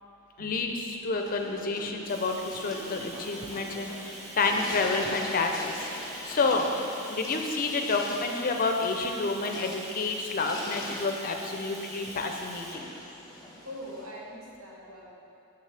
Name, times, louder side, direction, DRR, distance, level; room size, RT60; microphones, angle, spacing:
voice 1, 0.4-5.9 6.2-6.7 7.1-12.9, left 3 dB, 40° left, 3 dB, 0.5 m, -29 dB
sound 1, 1.1-14.1, left 1 dB, 15° left, 0.8 m, -43 dB
Bathtub (filling or washing), 2.1-12.8, right 2 dB, 30° right, 0.7 m, -44 dB
voice 2, 13.6-15.1, equal, 75° right, -3 dB, 1.2 m, -42 dB
6.8 x 6.5 x 3.3 m, 2.8 s
head